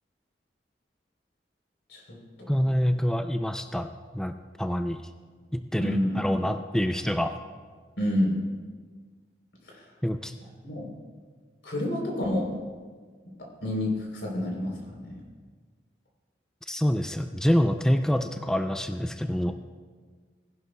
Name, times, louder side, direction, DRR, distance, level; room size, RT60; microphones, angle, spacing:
voice 1, 1.9-2.5 5.8-6.2 8.0-8.4 9.6-9.9 10.6-10.9 11.6-12.5 13.4-15.2, left 1 dB, 85° left, -1 dB, 3.6 m, -29 dB
voice 2, 2.5-5.0 5.5-7.4 10.0-10.3 16.7-19.5, equal, 5° left, 8 dB, 0.3 m, -26 dB
18.5 x 11.0 x 2.3 m, 1.5 s
head